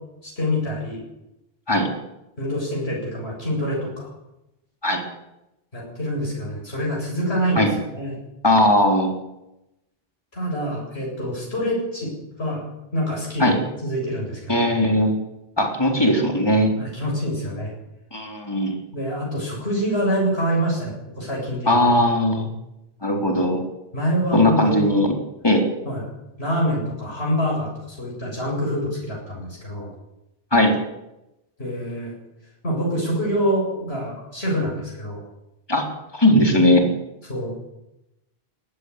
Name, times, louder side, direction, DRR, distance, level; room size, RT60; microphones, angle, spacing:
voice 1, 0.2-1.0 2.4-4.1 5.7-8.1 10.3-12.1 12.4-12.6 12.9-14.7 16.8-17.7 18.9-22.0 23.9-24.8 25.8-26.0 26.4-29.9 31.6-32.1 32.6-35.2 37.3-37.5, equal, 90° left, -3 dB, 7.9 m, -26 dB
voice 2, 8.4-9.1 13.4-13.6 14.5-15.1 15.6-16.7 18.1-18.8 21.7-22.5 23.0-23.6 24.3-25.1 25.4-25.7 30.5-30.8 35.7-35.9 36.1-36.9, left 1 dB, 25° left, 2 dB, 4.0 m, -18 dB
19.5 x 15.5 x 9.8 m, 0.92 s
omnidirectional pair, 1.0 m